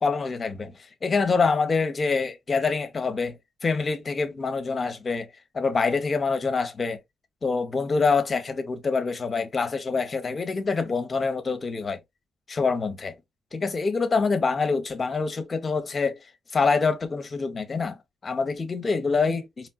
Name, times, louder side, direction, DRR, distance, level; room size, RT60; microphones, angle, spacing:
voice 1, 0.0-0.7 1.0-3.4 3.6-5.3 5.5-7.0 7.4-12.0 12.5-13.1 13.5-16.2 16.5-18.0 18.2-19.7, left 4 dB, 45° left, 1.0 m, -25 dB
4.3 x 3.1 x 2.4 m
supercardioid pair, 55°, 0 cm